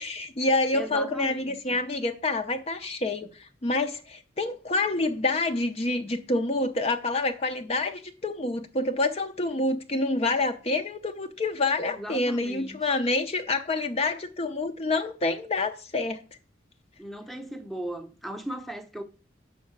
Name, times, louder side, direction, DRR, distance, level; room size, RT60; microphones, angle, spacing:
voice 1, 0.0-16.2, left 2 dB, 35° left, 0.6 m, -27 dB
voice 2, 0.7-1.8 11.8-12.8 17.0-19.0, right 1 dB, ahead, 0.8 m, -37 dB
6.4 x 5.5 x 7.2 m
head